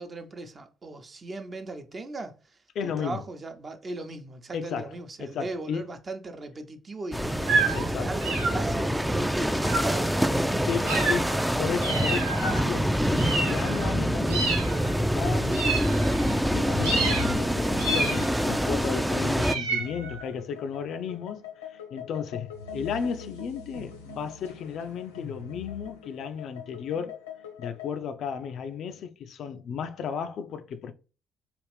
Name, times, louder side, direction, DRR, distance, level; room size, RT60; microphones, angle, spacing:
voice 1, 0.0-2.3 2.8-10.2 10.8-11.2, right 2 dB, 40° right, 0.8 m, -38 dB
voice 2, 2.7-3.2 4.5-5.9 7.7-8.1 10.6-11.3 11.6-14.5 14.8-15.9 16.5-21.5 21.9-27.2 27.6-30.9, left 7 dB, 60° left, 0.4 m, -34 dB
sound 1, 7.1-19.6, equal, 5° right, 0.4 m, -26 dB
sound 2, 7.4-7.9 8.2-8.9 9.6-10.0 10.9-11.5 11.8-12.6 13.2-14.0 14.3-15.0 15.5-16.4 16.8-17.4 17.8-18.6 19.4-20.3, right 3 dB, 80° right, 1.0 m, -29 dB
sound 3, 16.7-28.0, left 6 dB, 85° left, 0.9 m, -42 dB
4.9 x 2.5 x 3.2 m
figure-of-eight pair, 45°, 0 cm